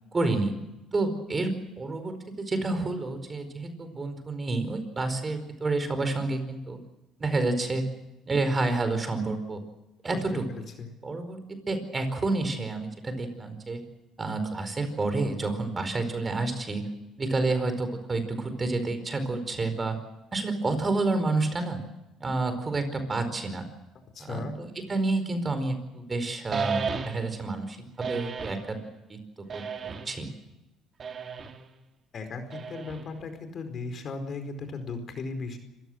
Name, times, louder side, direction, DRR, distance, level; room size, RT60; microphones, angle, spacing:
voice 1, 0.1-0.5 0.9-6.8 7.2-7.9 8.3-9.6 10.0-10.4 11.0-13.8 14.2-16.9 17.2-20.0 20.3-21.8 22.2-23.6 24.2-28.8 29.1-29.2 29.5-30.3, right 3 dB, 30° right, 9 dB, 4.7 m, -29 dB
voice 2, 10.3-10.9 24.1-24.5 32.1-35.6, left 4 dB, 50° left, 7 dB, 4.6 m, -36 dB
sound 1, 26.5-27.4 28.0-28.7 29.5-30.2 31.0-31.6 32.5-33.2, right 5 dB, 45° right, 2.5 m, -34 dB
26.5 x 15.5 x 7.8 m, 0.97 s
supercardioid pair, 80°, 0 cm